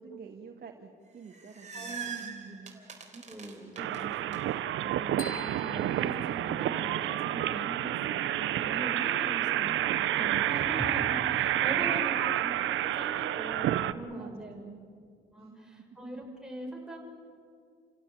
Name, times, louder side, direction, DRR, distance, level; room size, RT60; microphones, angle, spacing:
voice 1, 0.0-2.8 11.2-12.3 14.1-14.8 15.4-15.7, right 6 dB, 50° right, 2 dB, 2.3 m, -48 dB
sound 1, 1.1-4.4, right 6 dB, 35° right, 3.8 m, -43 dB
voice 2, 1.7-4.5 4.8-14.6 15.3-17.0, right 1 dB, 5° right, -1 dB, 6.6 m, -41 dB
sound 2, 3.8-13.9, right 13 dB, 80° right, 0.8 m, -29 dB
sound 3, 5.2-7.1, left 4 dB, 50° left, 3.1 m, -47 dB
29.0 x 17.0 x 8.7 m, 2.2 s
cardioid pair, 90°, 20 cm